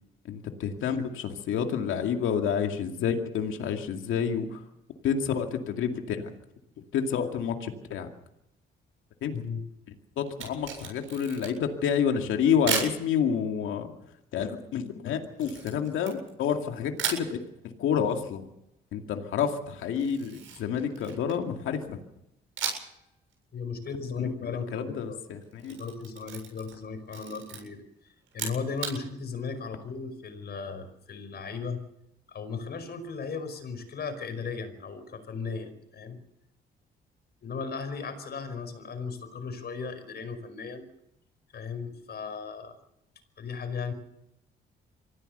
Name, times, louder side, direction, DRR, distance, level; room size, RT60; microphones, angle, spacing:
voice 1, 0.2-4.6 5.0-6.3 6.9-8.1 9.2-9.4 10.2-13.9 14.3-18.5 18.9-22.0 24.2-25.8, left 7 dB, 80° left, 4 dB, 2.4 m, -29 dB
Camera, 10.3-11.7 12.7-13.0 15.4-16.6 17.0-17.3 20.0-21.5 22.6-23.0 23.3-23.4 25.4-26.8 27.1-27.6 28.3-29.0, right 7 dB, 80° right, 7.7 m, -35 dB
voice 2, 23.5-25.2 25.7-27.8 28.3-31.8 32.3-36.2 37.4-40.9 41.5-42.7 43.4-43.9, left 5 dB, 55° left, 9 dB, 5.3 m, -36 dB
25.0 x 16.0 x 6.8 m, 0.84 s
cardioid pair, 90°, 20 cm